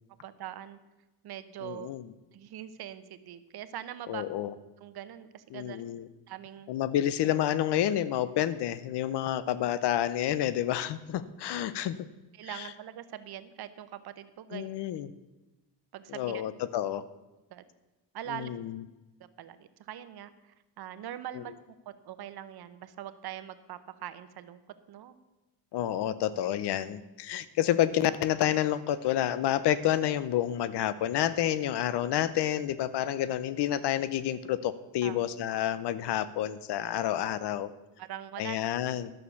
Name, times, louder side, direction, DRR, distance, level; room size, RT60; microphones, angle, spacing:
voice 1, 0.2-0.8 1.2-1.9 2.3-4.3 4.8-5.8 6.3-6.7 12.4-14.7 15.9-16.4 17.5-17.6 18.1-18.5 19.4-21.5 22.0-24.6 24.9-25.2 35.0-35.2 38.0-38.6, right 11 dB, 60° right, 12 dB, 0.8 m, -42 dB
voice 2, 1.6-2.1 4.1-4.5 5.5-6.1 6.7-12.0 12.4-12.7 14.5-15.1 16.1-17.0 18.3-18.8 21.3-21.4 25.7-37.7 38.4-39.1, left 11 dB, 65° left, 16 dB, 0.8 m, -29 dB
12.0 x 6.6 x 7.0 m, 1.1 s
cardioid pair, 155°, 43 cm